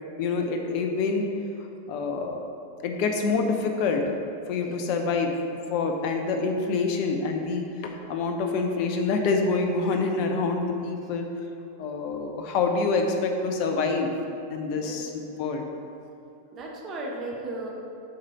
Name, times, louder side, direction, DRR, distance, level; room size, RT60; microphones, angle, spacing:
voice 1, 0.2-1.3 1.9-2.5 2.8-4.0 4.5-5.3 5.7-11.3 11.8-14.1 14.5-15.6, left 4 dB, 45° left, 4 dB, 0.6 m, -26 dB
voice 2, 16.5-17.7, right 2 dB, 30° right, -1 dB, 0.9 m, -36 dB
7.4 x 3.2 x 4.2 m, 2.6 s
figure-of-eight pair, 90°, 0 cm